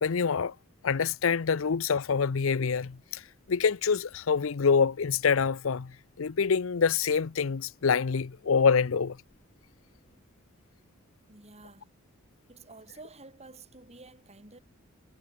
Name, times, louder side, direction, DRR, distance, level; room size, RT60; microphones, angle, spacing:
voice 1, 0.0-0.5 0.8-3.2 3.5-9.2, left 6 dB, 70° left, 0.6 m, -26 dB
sound 1, 2.7-10.3, left 1 dB, 35° left, 7.5 m, -69 dB
voice 2, 11.3-11.9 12.5-14.6, right 3 dB, 30° right, 5.4 m, -50 dB
head